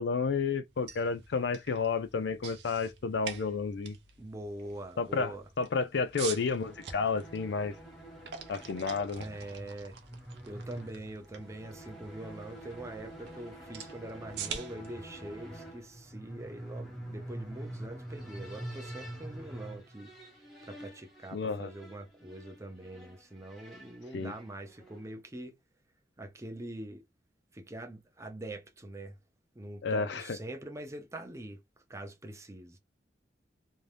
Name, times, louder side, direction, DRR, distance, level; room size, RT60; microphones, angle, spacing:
voice 1, 0.0-3.9 5.0-7.7 8.5-9.3 21.3-21.7 24.1-24.3 29.8-30.4, left 4 dB, 75° left, 0.4 m, -31 dB
sound 1, 0.7-16.6, right 7 dB, 70° right, 0.6 m, -47 dB
voice 2, 4.2-5.5 9.2-10.0 10.5-20.1 20.6-25.5 26.2-27.0 27.5-29.2 29.6-31.6 31.9-32.8, right 1 dB, 15° right, 0.5 m, -44 dB
sound 2, 6.1-25.2, right 1 dB, ahead, 1.0 m, -46 dB
2.6 x 2.2 x 3.2 m
head